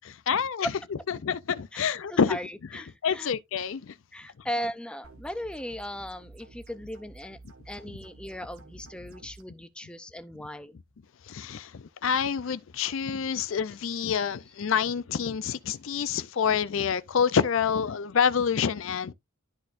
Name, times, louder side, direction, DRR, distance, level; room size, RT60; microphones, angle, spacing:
voice 1, 0.1-0.7 1.1-2.4 2.7-3.9 11.3-19.1, left 7 dB, 65° left, 0.4 m, -27 dB
voice 2, 1.7-3.3 4.1-7.4 7.7-10.8, equal, 5° left, 0.5 m, -37 dB
sound 1, 5.0-9.4, right 3 dB, 80° right, 1.4 m, -50 dB
12.5 x 4.2 x 2.5 m
head